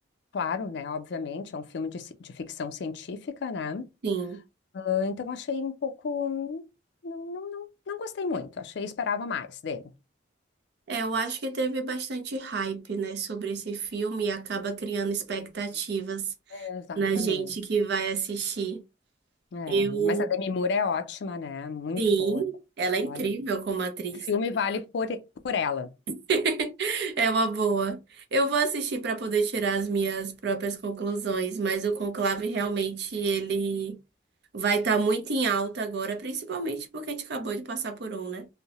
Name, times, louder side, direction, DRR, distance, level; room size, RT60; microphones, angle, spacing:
voice 1, 0.3-3.9 4.7-6.6 7.0-9.9 15.4-15.5 16.5-17.5 19.5-22.4 23.0-23.3 24.2-25.9, left 5 dB, 65° left, 0.4 m, -32 dB
voice 2, 4.0-4.4 10.9-16.7 17.0-18.8 19.7-20.3 22.0-24.3 26.3-34.0 34.5-38.5, right 4 dB, 60° right, 0.5 m, -28 dB
2.7 x 2.0 x 2.8 m
head